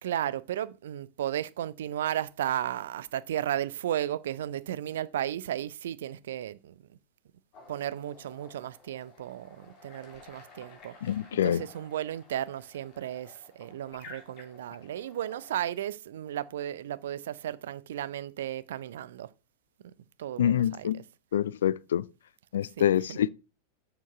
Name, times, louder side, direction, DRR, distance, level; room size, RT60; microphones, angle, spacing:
voice 1, 0.0-7.0 7.7-10.9 11.4-19.3 19.8-19.9 20.2-21.0 22.8-23.2, right 11 dB, 60° right, 0.5 m, -34 dB
sound 1, 7.5-15.7, left 3 dB, 40° left, 3.2 m, -53 dB
voice 2, 11.0-11.6 20.4-21.0 21.3-22.0 22.5-23.3, left 10 dB, 60° left, 0.4 m, -26 dB
7.1 x 6.9 x 5.5 m
figure-of-eight pair, 90°, 0 cm